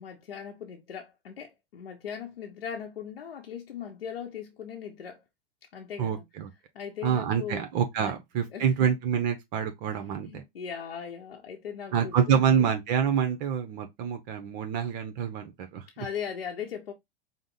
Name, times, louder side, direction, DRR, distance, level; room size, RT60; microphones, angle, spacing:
voice 1, 0.0-5.2 5.7-6.3 6.7-7.7 8.0-8.2 8.5-8.9 9.9-12.7 15.9-16.9, left 7 dB, 80° left, 0.7 m, -39 dB
voice 2, 6.0-6.5 7.0-10.4 11.9-15.8, right 7 dB, 45° right, 0.7 m, -27 dB
4.9 x 2.0 x 3.8 m
figure-of-eight pair, 95°, 29 cm